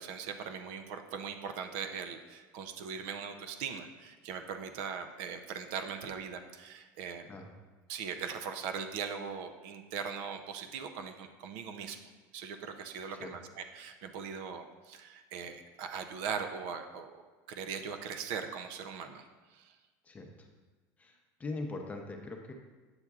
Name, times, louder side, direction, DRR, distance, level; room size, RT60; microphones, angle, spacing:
voice 1, 0.0-7.3 7.9-12.0 12.3-17.2 17.5-19.8, right 6 dB, 65° right, 6 dB, 0.5 m, -40 dB
voice 2, 20.0-20.5 21.0-22.5, left 3 dB, 15° left, 2 dB, 0.7 m, -41 dB
7.9 x 5.7 x 2.4 m, 1.3 s
supercardioid pair, 140°, 9 cm